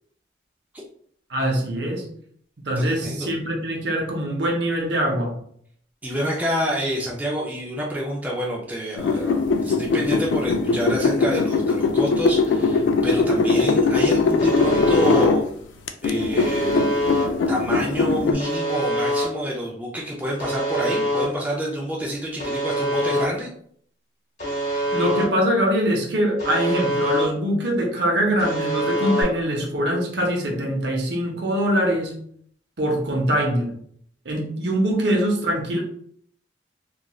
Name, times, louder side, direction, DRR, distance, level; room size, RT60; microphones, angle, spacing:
voice 1, 1.3-2.0 2.6-5.4 24.9-32.2 32.8-33.8 34.3-35.8, equal, 65° right, 0 dB, 0.7 m, -23 dB
voice 2, 2.8-3.3 6.0-15.4 16.0-16.8 17.5-23.5, equal, 10° right, -3 dB, 0.4 m, -28 dB
sound 1, 9.0-15.4 15.9-18.3, left 4 dB, 80° left, 0.3 m, -21 dB
Alarm, 14.4-15.2 16.4-17.2 18.4-19.2 20.4-21.2 22.4-23.2 24.4-25.2 26.4-27.2 28.4-29.2, equal, 40° left, 0.9 m, -24 dB
2.9 x 2.4 x 2.3 m, 0.63 s
head